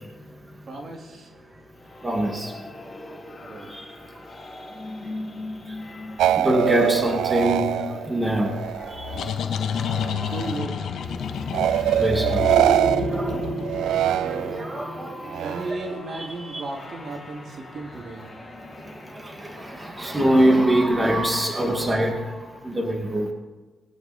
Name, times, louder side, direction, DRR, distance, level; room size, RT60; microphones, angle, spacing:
voice 1, 0.7-1.3 3.4-3.7 10.3-10.7 13.8-14.1 15.4-18.3, right 2 dB, 55° right, 1 dB, 2.7 m, -35 dB
sound 1, 1.8-21.6, equal, 25° left, 5.6 m, -36 dB
voice 2, 2.0-2.5 3.7-3.8 6.4-8.5 8.8-9.2 11.5-11.6 11.9-12.5 13.1-13.4 14.0-15.1 15.4-15.6 16.4-16.6 19.1-22.3 22.6-23.3, right 1 dB, 15° right, 1 dB, 2.3 m, -24 dB
sound 2, 6.2-9.4 9.7-10.5 11.5-14.8 15.3-16.0, right 12 dB, 90° right, 0.3 m, -24 dB
sound 3, 8.7-14.2, left 8 dB, 75° left, 0.8 m, -30 dB
20.0 x 9.2 x 4.4 m, 1.3 s
cardioid pair, 85°, 0 cm